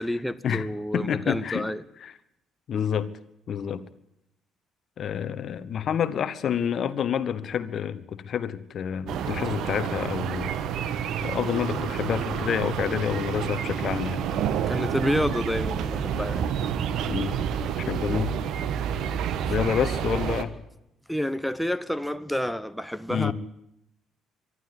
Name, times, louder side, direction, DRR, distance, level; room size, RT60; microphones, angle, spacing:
voice 1, 0.0-1.8 14.7-16.5 21.1-23.3, equal, ahead, 0.9 m, -29 dB
voice 2, 0.9-1.6 2.0-2.1 2.7-3.1 3.5-3.8 5.0-10.5 11.2-14.2 17.1-17.4 17.9-18.3 19.5-20.5 23.1-23.3, left 8 dB, 50° left, 1.2 m, -28 dB
sound 1, 9.1-20.4, right 8 dB, 60° right, 1.3 m, -29 dB
24.5 x 11.5 x 9.5 m
figure-of-eight pair, 50°, 0 cm